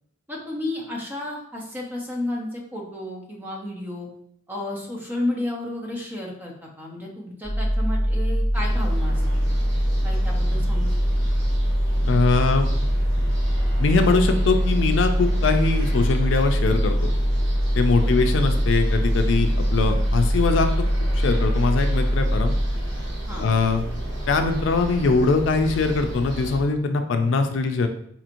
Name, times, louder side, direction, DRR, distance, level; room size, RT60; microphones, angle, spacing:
voice 1, 0.3-4.1 4.5-9.5 10.0-10.9 17.9-18.2 23.3-23.5, left 1 dB, 10° right, -1 dB, 0.7 m, -32 dB
sound 1, 7.4-23.2, equal, 25° left, 0.9 m, -22 dB
sound 2, 8.5-26.6, right 1 dB, 85° right, 0.9 m, -34 dB
voice 2, 12.0-12.7 13.8-17.1 17.7-20.7 21.1-22.5 23.4-23.8 24.3-27.9, left 4 dB, 75° left, 6 dB, 0.4 m, -22 dB
4.1 x 2.9 x 2.5 m, 0.69 s
head